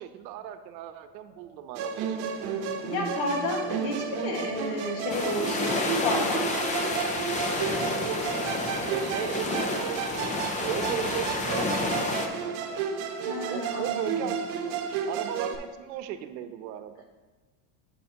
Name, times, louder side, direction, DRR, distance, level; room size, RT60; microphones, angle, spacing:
voice 1, 0.0-2.5 8.8-9.9 10.7-12.8 13.5-14.4 14.6-17.0, right 10 dB, 90° right, 10 dB, 0.8 m, -37 dB
Wind, 1.2-9.1, right 2 dB, 5° right, 2.5 m, -48 dB
Musical instrument, 1.7-15.6, right 6 dB, 55° right, 1.0 m, -32 dB
voice 2, 2.8-6.5 13.2-14.3, left 2 dB, 60° left, 2 dB, 1.8 m, -31 dB
sound 1, 5.1-12.3, left 2 dB, 15° left, 0.4 m, -30 dB
8.5 x 7.6 x 2.8 m, 1.5 s
supercardioid pair, 135°, 50 cm